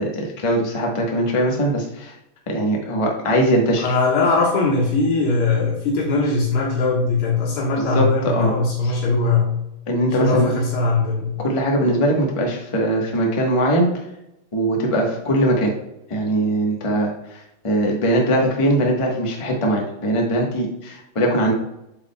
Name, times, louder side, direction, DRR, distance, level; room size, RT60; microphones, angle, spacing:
voice 1, 0.0-2.1 2.5-3.9 7.9-8.5 8.8-8.9 9.9-10.5 11.4-13.9 14.5-15.7 16.1-21.5, right 1 dB, 20° left, -1 dB, 0.8 m, -21 dB
voice 2, 3.8-9.6 10.2-11.4, left 3 dB, 90° left, -5 dB, 2.4 m, -20 dB
7.9 x 6.0 x 2.2 m, 0.86 s
omnidirectional pair, 2.4 m